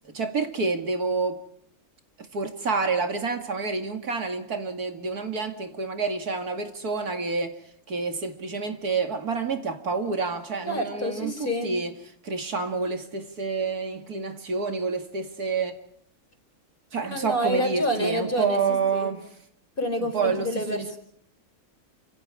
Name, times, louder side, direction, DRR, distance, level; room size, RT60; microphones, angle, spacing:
voice 1, 0.0-1.4 2.3-7.6 7.9-11.9 12.2-15.7 16.9-19.3 20.0-20.9, right 4 dB, 75° right, 2.7 m, -28 dB
voice 2, 10.7-11.7 17.1-18.6 18.9-19.1 19.8-21.0, equal, 35° left, 4.6 m, -28 dB
30.0 x 27.0 x 4.9 m
omnidirectional pair, 1.6 m